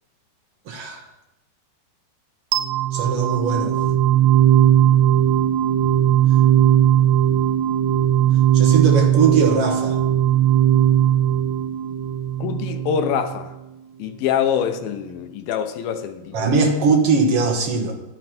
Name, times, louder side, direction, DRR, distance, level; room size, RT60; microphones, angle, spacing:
voice 1, 0.7-1.0 2.9-3.8 8.5-10.0 16.3-17.9, right 4 dB, 70° right, 1.4 m, -20 dB
sound 1, 2.5-13.5, right 11 dB, 90° right, 2.7 m, -18 dB
voice 2, 12.4-13.5 14.0-16.5, left 8 dB, 75° left, 2.3 m, -25 dB
11.5 x 11.0 x 4.4 m
omnidirectional pair, 4.7 m